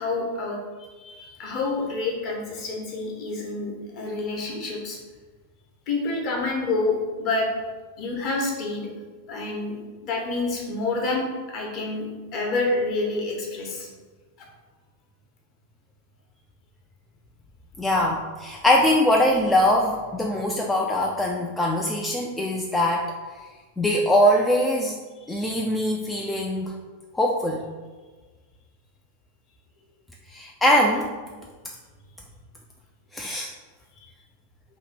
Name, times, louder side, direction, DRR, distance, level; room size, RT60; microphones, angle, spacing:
voice 1, 0.0-5.0 5.9-7.5 8.0-8.9 9.3-9.8 10.0-12.0 12.3-13.9 25.3-25.5, left 3 dB, 40° left, -1 dB, 1.0 m, -28 dB
voice 2, 17.8-23.1 23.8-25.0 25.3-26.8 27.1-27.6 30.3-31.1 33.1-33.5, left 1 dB, 10° left, -1 dB, 0.3 m, -22 dB
2.9 x 2.8 x 4.1 m, 1.4 s
figure-of-eight pair, 90°, 0 cm